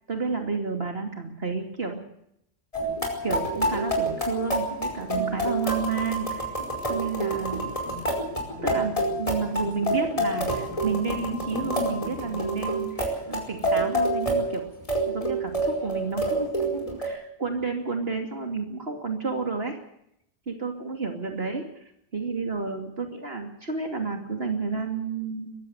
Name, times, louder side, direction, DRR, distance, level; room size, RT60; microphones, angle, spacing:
voice 1, 0.1-2.0 3.2-6.5 6.9-7.7 8.6-14.7 15.0-19.8 20.5-21.7 22.1-25.5, right 4 dB, 70° right, 4 dB, 2.9 m, -31 dB
sound 1, 2.7-17.1, right 1 dB, 30° left, 5.0 m, -28 dB
21.5 x 15.5 x 8.1 m, 0.75 s
omnidirectional pair, 1.1 m